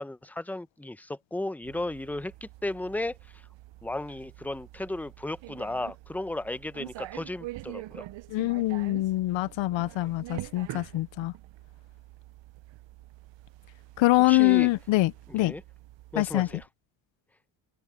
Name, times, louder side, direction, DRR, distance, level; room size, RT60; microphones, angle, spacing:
voice 1, 0.0-3.4 3.8-8.1 14.2-14.7 15.3-15.6 16.1-16.7, left 1 dB, 5° left, 0.9 m, -35 dB
sound 1, 1.6-16.7, right 17 dB, 70° right, 0.8 m, -45 dB
voice 2, 8.3-11.3 14.0-15.5 16.2-16.5, left 19 dB, 75° left, 0.7 m, -24 dB
open air
supercardioid pair, 65°, 46 cm